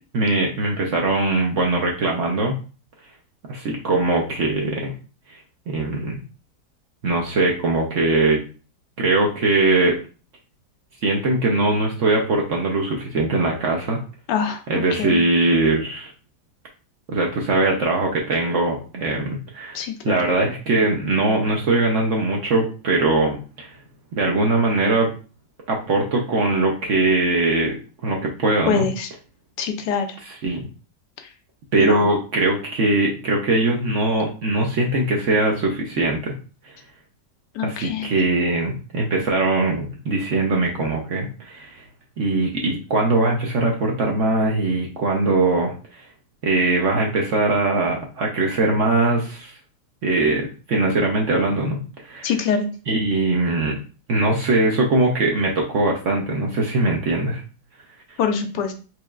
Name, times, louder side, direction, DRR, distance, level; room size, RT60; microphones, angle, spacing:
voice 1, 0.1-2.6 3.5-4.9 5.3-5.4 5.7-6.2 7.0-8.4 9.0-10.0 11.0-14.0 14.7-16.1 17.1-23.7 24.1-25.1 25.7-27.8 28.0-28.9 30.4-30.7 31.7-36.3 36.6-36.7 37.6-41.8 42.2-46.1 46.4-49.5 50.0-52.3 52.9-53.8 54.1-57.4, right 2 dB, 60° right, 0 dB, 0.9 m, -21 dB
voice 2, 14.3-14.6 14.9-15.2 19.7-20.1 28.7-29.1 29.6-30.1 31.8-32.1 37.5-38.1 52.2-52.7 58.2-58.7, left 6 dB, 80° left, 6 dB, 1.2 m, -24 dB
4.5 x 3.1 x 2.3 m, 0.36 s
omnidirectional pair, 1.8 m